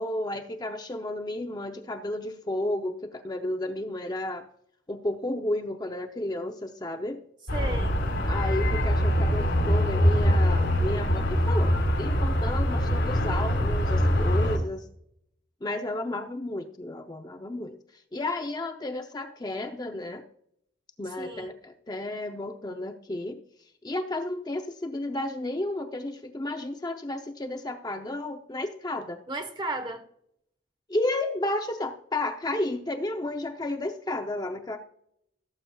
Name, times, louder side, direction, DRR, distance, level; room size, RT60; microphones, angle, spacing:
voice 1, 0.0-4.4 4.9-7.2 8.2-14.9 15.6-20.2 21.0-23.4 23.8-29.2 30.9-34.8, left 1 dB, 20° left, 0.6 m, -32 dB
sound 1, 7.5-14.6, equal, 80° left, 3.7 m, -23 dB
voice 2, 7.5-8.0 21.2-21.5 29.3-30.0, right 2 dB, 25° right, 1.1 m, -34 dB
17.5 x 7.6 x 2.3 m
head